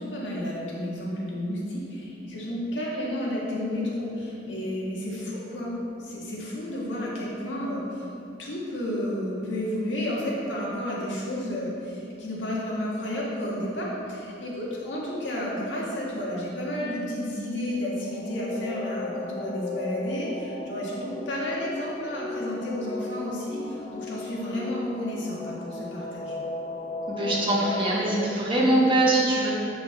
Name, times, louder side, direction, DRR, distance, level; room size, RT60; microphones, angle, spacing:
voice 1, 0.0-5.7 6.0-8.1 8.4-26.3, left 1 dB, 90° left, -4 dB, 1.6 m, -31 dB
sound 1, 17.5-28.2, left 3 dB, 30° left, 0.5 m, -36 dB
voice 2, 27.1-29.5, right 1 dB, 30° right, -5 dB, 1.2 m, -22 dB
8.0 x 5.1 x 3.6 m, 2.6 s
head